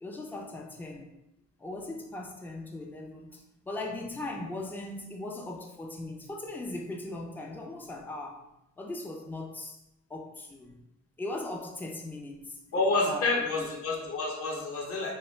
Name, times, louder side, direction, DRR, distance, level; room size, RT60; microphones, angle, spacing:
voice 1, 0.0-1.2 1.6-8.4 8.8-9.8 10.1-10.8 11.2-12.6 13.1-13.7, left 2 dB, 5° left, 1 dB, 0.3 m, -39 dB
voice 2, 12.7-15.1, left 3 dB, 50° left, -1 dB, 0.8 m, -28 dB
2.2 x 2.0 x 3.2 m, 0.89 s
cardioid pair, 90°, 30 cm